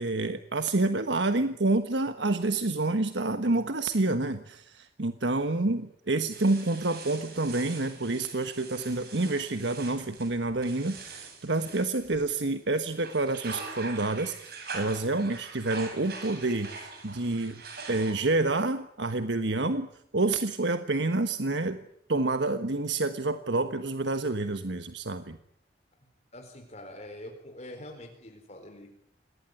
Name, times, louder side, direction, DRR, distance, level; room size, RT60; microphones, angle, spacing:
voice 1, 0.0-17.6 17.9-19.9 20.1-21.8 22.1-25.4, right 2 dB, 80° right, 9 dB, 1.3 m, -28 dB
sound 1, 6.3-12.5 12.9-18.5, right 4 dB, 60° right, 7.7 m, -43 dB
voice 2, 26.3-28.9, left 1 dB, 40° left, 4 dB, 4.2 m, -44 dB
27.5 x 19.5 x 9.8 m, 0.75 s
head